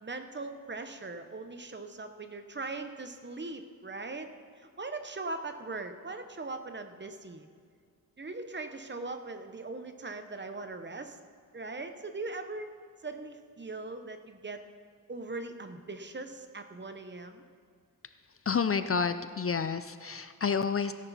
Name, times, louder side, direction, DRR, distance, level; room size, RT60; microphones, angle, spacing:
voice 1, 0.0-4.3 4.6-7.5 8.2-11.2 11.5-12.7 13.0-14.6 15.1-17.4, right 3 dB, 30° right, 8 dB, 0.8 m, -40 dB
voice 2, 18.5-20.9, left 6 dB, 40° left, 11 dB, 0.4 m, -29 dB
17.0 x 10.5 x 4.1 m, 2.1 s
wide cardioid pair, 125°, 35 cm